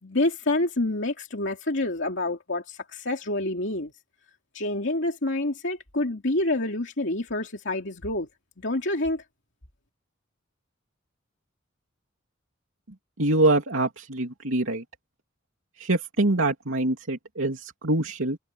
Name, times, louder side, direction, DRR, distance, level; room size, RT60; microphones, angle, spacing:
voice 1, 0.0-3.9 4.5-8.3 8.6-9.2, left 2 dB, 65° left, 2.8 m, -27 dB
voice 2, 13.2-14.8 15.8-18.4, right 2 dB, 85° right, 2.9 m, -24 dB
head